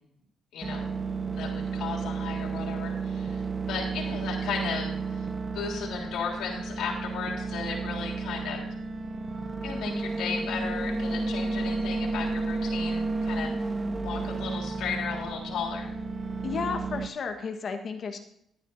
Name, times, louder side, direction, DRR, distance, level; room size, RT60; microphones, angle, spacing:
voice 1, 0.5-0.9 1.3-8.7 9.6-13.5 14.0-15.9, left 5 dB, 90° left, -1 dB, 3.5 m, -35 dB
sound 1, 0.6-17.1, right 3 dB, 30° right, 0.7 m, -32 dB
voice 2, 16.4-18.2, left 5 dB, 55° left, 5 dB, 1.3 m, -33 dB
14.5 x 10.0 x 2.7 m, 0.73 s
cardioid pair, 100°, 0 cm